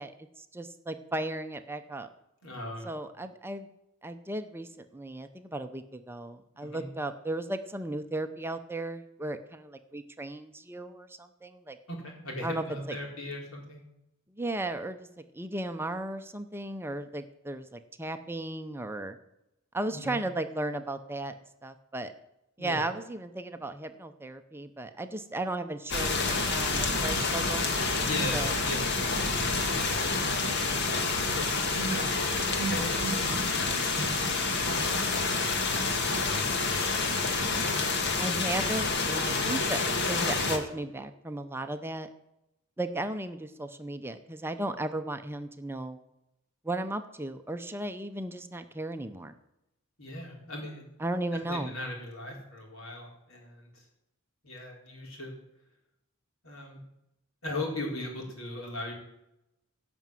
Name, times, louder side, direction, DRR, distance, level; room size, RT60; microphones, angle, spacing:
voice 1, 0.0-2.1 2.8-3.7 4.0-11.8 12.4-12.6 14.4-15.0 15.3-19.2 19.7-21.3 21.6-22.1 22.6-27.7 28.3-28.5 37.5-37.7 38.2-39.8 40.1-42.1 42.8-46.0 46.6-49.3 51.0-51.7, right 1 dB, 10° right, 8 dB, 0.6 m, -35 dB
voice 2, 2.4-2.9 6.6-6.8 11.9-13.8 19.9-20.2 22.6-22.8 28.1-29.8 31.3-32.1 32.4-33.7 34.4-35.7 36.0-36.4 50.0-50.9 51.5-53.9 54.4-55.3 56.4-56.8 57.4-58.9, equal, 80° left, -1 dB, 4.3 m, -38 dB
sound 1, 25.9-40.6, left 3 dB, 55° left, 1.8 m, -28 dB
16.5 x 6.1 x 7.6 m, 0.87 s
head